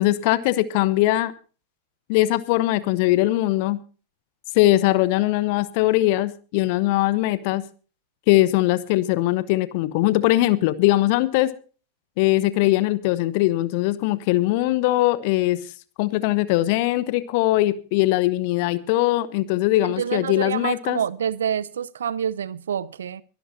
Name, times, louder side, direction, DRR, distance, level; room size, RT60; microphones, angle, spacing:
voice 1, 0.0-1.3 2.1-3.8 4.5-7.6 8.3-11.5 12.2-15.6 16.0-21.0, left 16 dB, 45° left, 1.0 m, -21 dB
voice 2, 19.8-23.2, right 8 dB, 65° right, 0.7 m, -27 dB
24.0 x 12.5 x 2.7 m
figure-of-eight pair, 90°, 0 cm